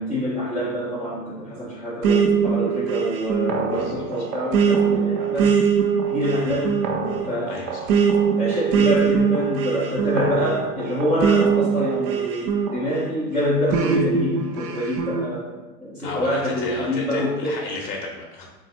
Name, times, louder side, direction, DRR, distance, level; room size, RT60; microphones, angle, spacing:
voice 1, 0.0-5.6 6.1-6.8 7.2-7.5 8.4-17.6, equal, ahead, -15 dB, 0.4 m, -26 dB
sound 1, 2.0-13.1 13.7-15.3, right 6 dB, 60° right, 0.5 m, -22 dB
voice 2, 3.6-4.1 7.5-8.0 16.0-18.5, left 4 dB, 60° left, 0 dB, 0.7 m, -33 dB
3.2 x 2.3 x 2.8 m, 1.1 s
hypercardioid pair, 120°, 50 cm